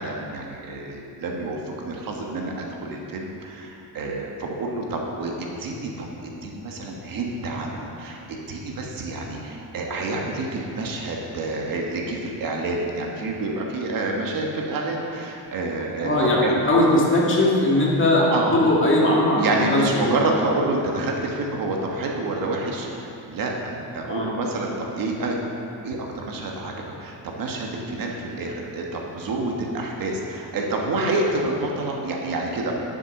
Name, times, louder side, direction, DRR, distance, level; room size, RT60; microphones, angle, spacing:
voice 1, 0.0-16.6 18.3-18.6 19.3-25.4 25.8-32.8, right 2 dB, 55° right, 0 dB, 1.5 m, -28 dB
voice 2, 16.0-18.2 18.5-20.2 24.1-24.3, left 1 dB, 30° left, -4 dB, 2.3 m, -19 dB
10.5 x 7.2 x 6.0 m, 2.7 s
cardioid pair, 140°, 41 cm